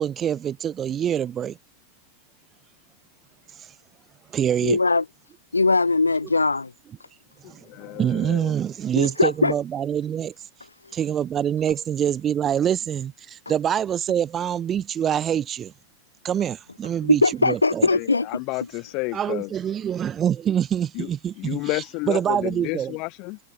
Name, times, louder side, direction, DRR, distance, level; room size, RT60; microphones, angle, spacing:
voice 1, 0.0-1.6 4.3-4.8 7.5-10.3 10.9-15.7 16.2-17.9 19.1-23.0, right 9 dB, 25° right, 0.6 m, -25 dB
voice 2, 4.6-5.0 5.5-6.7 9.0-9.5 17.0-18.3, left 3 dB, 80° left, 0.5 m, -20 dB
voice 3, 7.4-8.5 17.9-19.5 20.9-21.1 21.4-23.4, left 27 dB, 45° left, 1.3 m, -31 dB
figure-of-eight pair, 90°, 0 cm